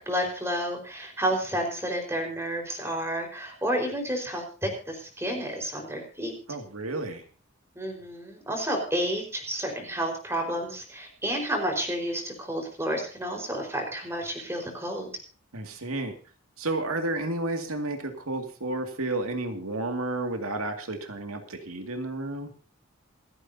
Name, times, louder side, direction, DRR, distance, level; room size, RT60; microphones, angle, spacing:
voice 1, 0.0-6.3 7.7-15.1, equal, 10° right, 2 dB, 4.7 m, -30 dB
voice 2, 6.5-7.2 15.5-16.1 16.6-22.5, right 2 dB, 90° right, 5 dB, 2.3 m, -31 dB
28.0 x 9.9 x 2.8 m, 0.38 s
head